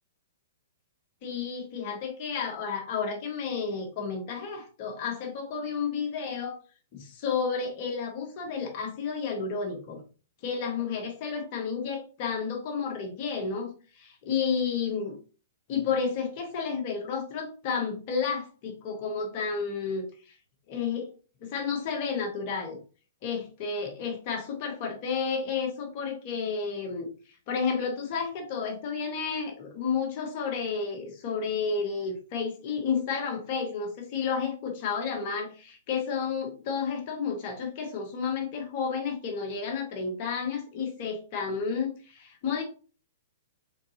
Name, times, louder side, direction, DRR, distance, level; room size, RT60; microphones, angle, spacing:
voice 1, 1.2-6.6 6.9-10.0 10.4-15.2 15.7-20.3 20.7-21.1 21.4-22.8 23.2-27.1 27.5-42.6, left 5 dB, 45° left, 1 dB, 1.6 m, -31 dB
3.9 x 3.5 x 2.9 m, 0.37 s
hypercardioid pair, 115°, 0 cm